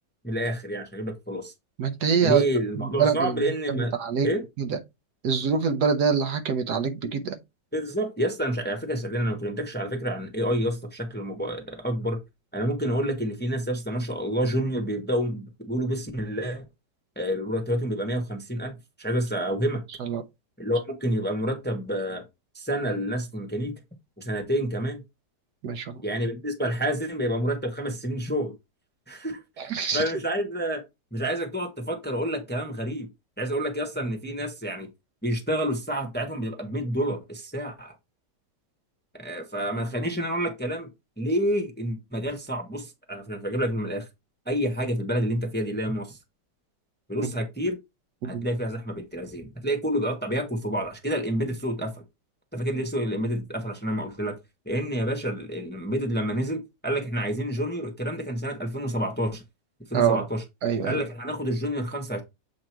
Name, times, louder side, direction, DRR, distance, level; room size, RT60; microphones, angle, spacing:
voice 1, 0.2-1.5 2.2-3.9 4.2-4.4 7.7-12.2 12.5-16.6 17.2-19.8 20.6-22.2 22.5-23.7 24.2-25.0 26.0-28.5 29.1-30.8 31.1-33.1 33.4-34.9 35.2-37.9 39.2-40.9 41.2-44.0 44.5-46.2 47.1-47.8 48.2-51.9 52.5-54.4 54.6-59.4 59.9-60.4 60.8-62.2, equal, 5° left, 0.9 m, -28 dB
voice 2, 1.8-2.4 3.0-3.4 3.7-4.3 4.6-4.8 5.2-7.4 20.0-20.2 25.6-26.0 29.6-30.0 47.2-47.3 48.2-48.4 59.9-60.2 60.6-61.0, right 6 dB, 70° right, 1.3 m, -25 dB
7.5 x 2.9 x 4.5 m
omnidirectional pair, 1.9 m